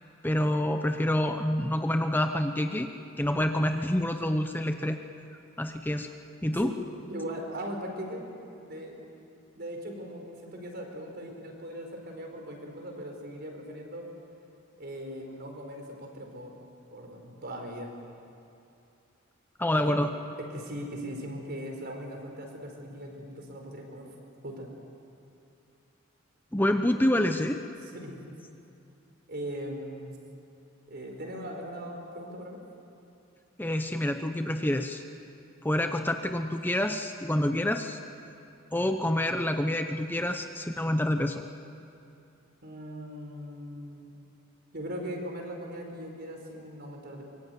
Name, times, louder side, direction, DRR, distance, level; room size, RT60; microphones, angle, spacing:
voice 1, 0.2-2.9 3.2-5.0 5.6-6.1 6.4-6.7 19.6-20.1 26.5-27.6 33.6-35.0 35.6-38.0 38.7-41.4, left 1 dB, 10° left, 6 dB, 0.8 m, -27 dB
voice 2, 7.1-8.2 8.6-9.0 9.6-14.1 14.8-16.6 16.9-17.9 19.7-19.9 20.5-24.1 24.4-24.7 27.8-28.2 29.3-30.2 30.9-32.6 42.6-44.1 44.7-47.2, equal, 55° right, 2 dB, 4.7 m, -39 dB
24.5 x 22.5 x 9.4 m, 2.6 s
head